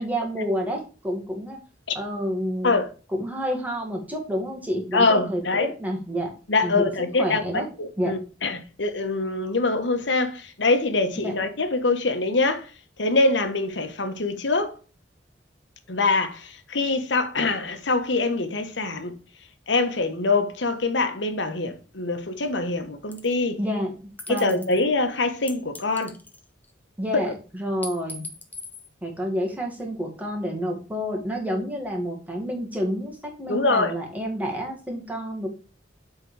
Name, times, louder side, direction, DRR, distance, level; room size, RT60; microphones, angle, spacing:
voice 1, 0.0-1.6 1.9-2.7 3.1-6.3 6.6-6.9 7.2-7.7 8.0-8.1 11.2-11.4 23.6-24.7 27.0-28.3 29.0-35.5, equal, 10° right, 1.7 m, -29 dB
voice 2, 4.9-5.7 6.5-12.7 13.0-14.8 15.9-19.2 19.7-23.6 24.3-26.1 27.2-27.3 33.5-33.9, left 3 dB, 70° left, 1.2 m, -24 dB
sound 1, 23.1-23.4 24.2-24.8 25.5-26.7 27.8-28.9, left 2 dB, 10° left, 0.9 m, -39 dB
7.6 x 3.8 x 4.7 m
head